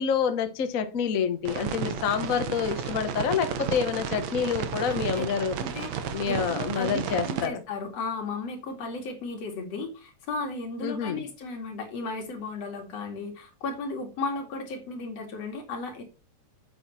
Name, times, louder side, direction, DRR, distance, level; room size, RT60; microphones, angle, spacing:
voice 1, 0.0-5.5 6.1-7.6 10.8-11.2, left 7 dB, 80° left, 8 dB, 0.7 m, -27 dB
sound 1, 1.5-7.5, right 7 dB, 65° right, 2.2 m, -33 dB
voice 2, 4.9-5.2 5.6-16.0, left 3 dB, 60° left, 3 dB, 3.2 m, -35 dB
8.3 x 7.9 x 4.2 m, 0.30 s
omnidirectional pair, 3.4 m